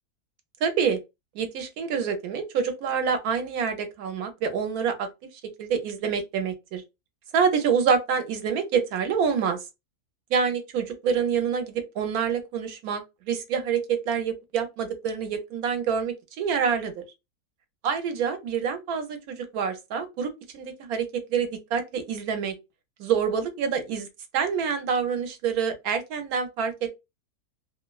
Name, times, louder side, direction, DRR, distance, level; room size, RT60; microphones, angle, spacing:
voice 1, 0.6-1.0 1.3-5.1 5.6-6.8 7.3-9.6 10.3-13.0 13.3-17.0 17.8-22.5 23.0-24.1 24.3-26.9, right 6 dB, 80° right, 1.1 m, -27 dB
2.7 x 2.1 x 2.2 m
omnidirectional pair, 1.6 m